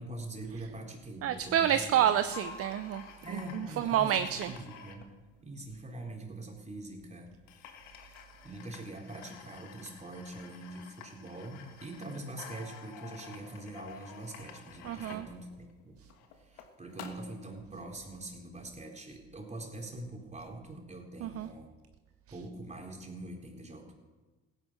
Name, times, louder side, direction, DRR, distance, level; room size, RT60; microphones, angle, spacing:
voice 1, 0.0-2.0 3.2-5.1 5.4-7.3 7.9-8.2 8.4-16.0 16.4-21.7 22.3-23.9, right 2 dB, 25° right, 1 dB, 3.7 m, -44 dB
voice 2, 1.2-4.5 14.8-15.3 21.2-21.5, right 10 dB, 50° right, 11 dB, 0.7 m, -29 dB
sound 1, 2.3-6.0 6.8-6.9 7.2-7.3 7.5-17.4, left 7 dB, 80° left, 1.5 m, -50 dB
16.0 x 9.7 x 6.2 m, 1.2 s
hypercardioid pair, 60°, 29 cm